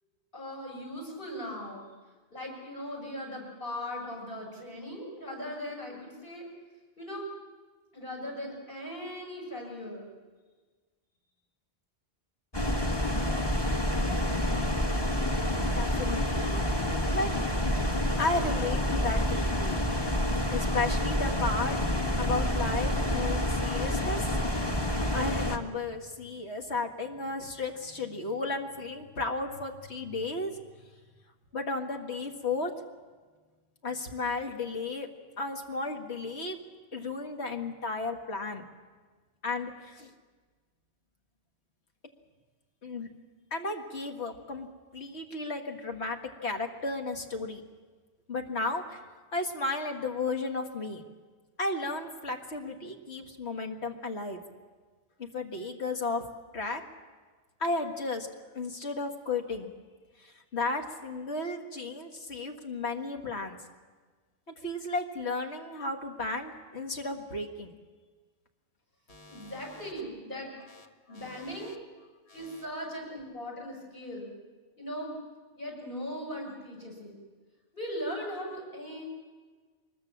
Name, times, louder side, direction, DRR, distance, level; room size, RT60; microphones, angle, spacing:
voice 1, 0.3-1.9 2.3-6.5 7.0-7.2 7.9-10.1 69.3-70.5 71.1-71.8 72.3-74.3 74.8-75.1 75.5-77.1 77.7-79.0, equal, 55° left, -1 dB, 7.0 m, -39 dB
sound 1, 12.5-25.6, left 1 dB, 25° left, 1.5 m, -28 dB
voice 2, 15.6-16.6 17.1-17.4 18.2-19.8 20.5-21.8 22.0-24.4 25.1-30.5 31.5-32.7 33.8-35.1 35.4-36.6 36.9-38.6 39.4-40.1 42.8-43.1 43.5-44.7 44.9-47.6 48.3-49.0 49.3-51.0 51.6-54.4 55.2-56.2 56.5-56.8 57.6-58.3 58.6-59.7 60.2-63.6 64.6-67.8 69.1-69.5 71.1-71.7 72.3-72.6, left 3 dB, 80° left, 3 dB, 2.1 m, -34 dB
23.5 x 21.5 x 7.3 m, 1.4 s
omnidirectional pair, 1.1 m